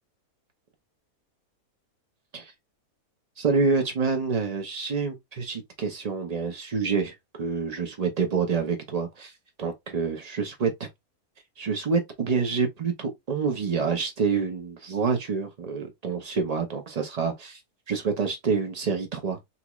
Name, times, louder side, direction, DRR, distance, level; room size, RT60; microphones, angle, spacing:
voice 1, 3.4-9.3 9.6-10.9 11.6-17.6 17.9-19.4, right 5 dB, 90° right, 0.3 m, -27 dB
4.0 x 3.0 x 2.3 m
omnidirectional pair, 1.6 m